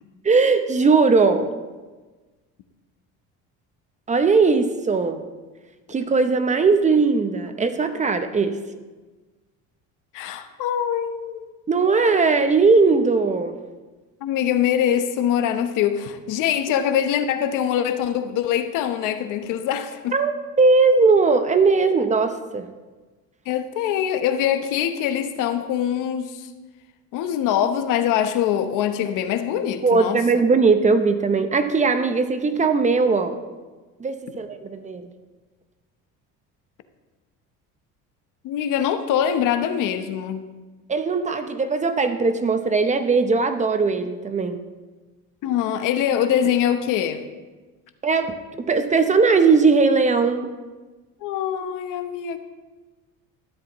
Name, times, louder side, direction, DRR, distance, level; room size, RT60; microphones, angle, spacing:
voice 1, 0.2-1.5 4.1-5.2 5.9-8.6 11.7-13.6 20.1-22.7 29.8-33.4 34.0-35.1 40.9-44.6 48.0-48.3 48.7-50.5, right 4 dB, 20° right, 8 dB, 0.7 m, -19 dB
voice 2, 10.1-11.5 14.2-20.2 23.5-26.5 27.1-30.2 38.4-40.4 45.4-47.2 51.2-52.4, left 9 dB, 70° left, 9 dB, 1.0 m, -23 dB
13.0 x 11.5 x 3.1 m, 1.3 s
cardioid pair, 120°, 33 cm